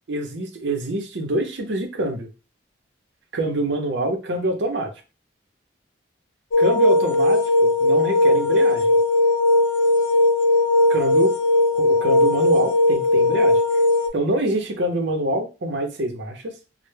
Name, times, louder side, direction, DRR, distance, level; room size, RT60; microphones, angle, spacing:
voice 1, 0.1-2.3 3.3-4.9 6.6-9.0 10.9-11.3 11.7-13.6 14.1-16.5, right 1 dB, 65° right, 5 dB, 0.6 m, -25 dB
sound 1, 6.5-14.1, left 2 dB, 75° left, 0.4 m, -18 dB
2.1 x 2.0 x 3.1 m, 0.30 s
head